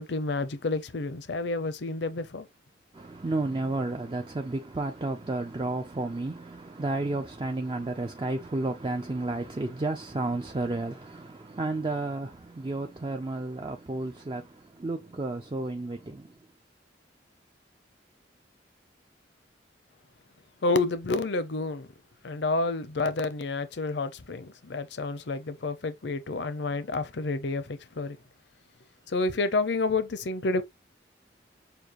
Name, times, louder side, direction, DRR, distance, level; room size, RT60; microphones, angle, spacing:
voice 1, 0.0-2.5 20.6-21.9 22.2-28.2 29.1-30.6, left 3 dB, 65° left, 0.6 m, -29 dB
voice 2, 2.9-16.4, right 2 dB, 25° right, 0.4 m, -32 dB
6.8 x 2.3 x 3.0 m
head